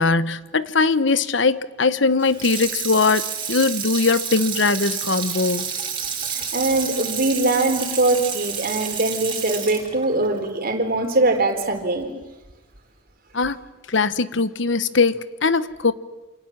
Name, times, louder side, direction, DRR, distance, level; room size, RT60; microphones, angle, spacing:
voice 1, 0.0-5.7 13.3-13.6 13.9-15.9, left 4 dB, 70° left, 1.1 m, -20 dB
Water tap faucet / Sink (filling or washing), 2.2-11.4 11.8-11.9, right 7 dB, 30° right, 5.2 m, -30 dB
voice 2, 6.2-12.1, right 2 dB, 50° right, 4.1 m, -22 dB
28.5 x 27.5 x 7.4 m
head